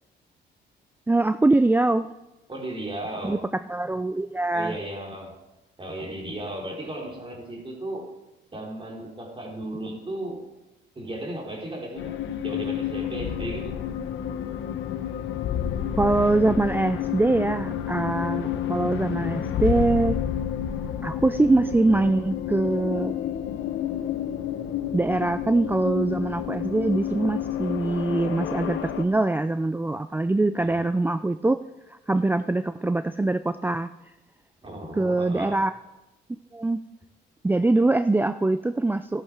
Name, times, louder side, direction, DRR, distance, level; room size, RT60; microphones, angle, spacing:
voice 1, 1.1-2.1 3.2-4.7 16.0-20.2 21.0-23.1 24.9-33.9 34.9-35.7 36.5-36.8 37.4-39.2, right 2 dB, 10° right, 12 dB, 0.4 m, -23 dB
voice 2, 2.5-3.5 4.5-5.4 5.8-8.1 8.5-10.5 11.0-13.8 30.6-30.9 34.6-35.6, right 1 dB, 25° right, 0 dB, 4.0 m, -35 dB
sound 1, 12.0-29.0, left 10 dB, 75° left, 1.1 m, -30 dB
15.0 x 12.0 x 4.8 m, 1.0 s
cardioid pair, 90°, 20 cm